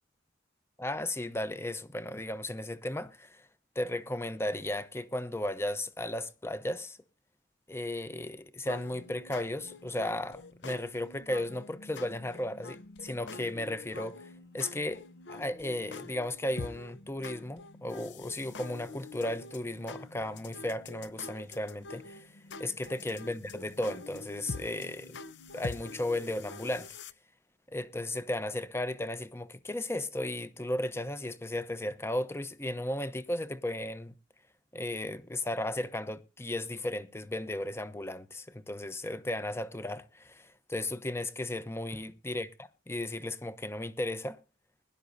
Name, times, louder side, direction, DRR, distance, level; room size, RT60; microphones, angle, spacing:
voice 1, 0.8-3.5 3.8-7.0 7.7-14.3 14.5-15.0 15.3-22.3 22.6-25.2 25.5-26.9 27.7-34.1 34.7-42.5 42.9-44.4, left 1 dB, 15° left, 0.8 m, -35 dB
sound 1, 8.7-27.1, left 3 dB, 65° left, 0.8 m, -46 dB
21.5 x 11.5 x 2.7 m
head